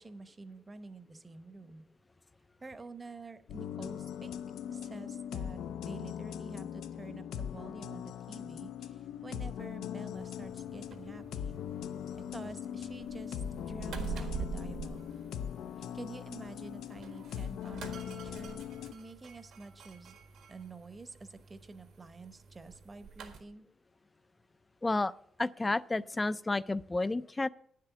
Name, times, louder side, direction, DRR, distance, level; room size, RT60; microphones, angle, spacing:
voice 1, 0.0-1.9 2.6-4.4 4.7-5.6 5.8-11.5 12.3-15.1 15.8-18.7 18.9-20.2 20.5-23.7, right 3 dB, 20° right, 12 dB, 0.8 m, -48 dB
sound 1, 3.5-18.9, left 9 dB, 80° left, 0.4 m, -40 dB
sound 2, 10.1-23.4, right 6 dB, 75° right, 1.7 m, -46 dB
voice 2, 24.8-25.1 25.4-27.5, left 2 dB, 15° left, 18 dB, 0.3 m, -31 dB
9.8 x 7.6 x 7.0 m, 0.68 s
cardioid pair, 140°, 0 cm